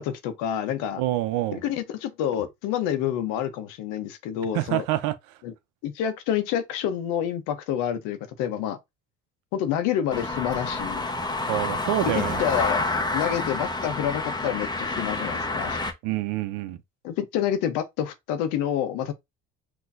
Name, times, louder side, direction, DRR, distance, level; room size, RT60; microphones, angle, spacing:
voice 1, 0.0-1.0 1.5-4.8 5.4-5.5 5.8-8.8 9.5-11.0 12.0-12.8 13.1-15.8 17.0-19.1, left 10 dB, 85° left, 1.1 m, -28 dB
voice 2, 1.0-1.6 4.5-5.1 11.5-12.4 16.0-16.8, right 15 dB, 90° right, 0.8 m, -26 dB
sound 1, 10.1-15.9, left 2 dB, 15° left, 1.1 m, -28 dB
6.0 x 3.0 x 2.7 m
cardioid pair, 95°, 30 cm